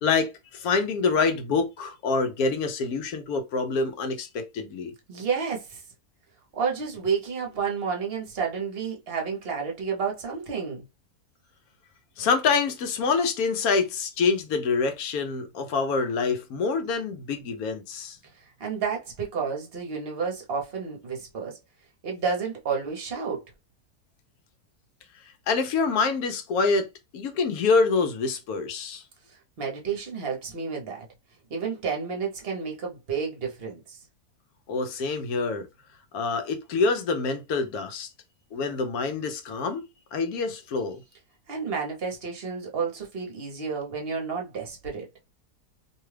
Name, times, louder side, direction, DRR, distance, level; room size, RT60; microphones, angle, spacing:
voice 1, 0.0-4.9 12.2-18.2 25.5-29.0 34.7-35.7 36.1-38.1 38.5-39.8 40.1-41.0, left 4 dB, 75° left, 1.0 m, -26 dB
voice 2, 5.1-5.8 6.5-10.8 18.4-21.6 22.0-23.4 29.3-31.0 31.5-34.0 41.5-45.1, right 5 dB, 45° right, 0.9 m, -31 dB
2.7 x 2.3 x 3.2 m
omnidirectional pair, 1.6 m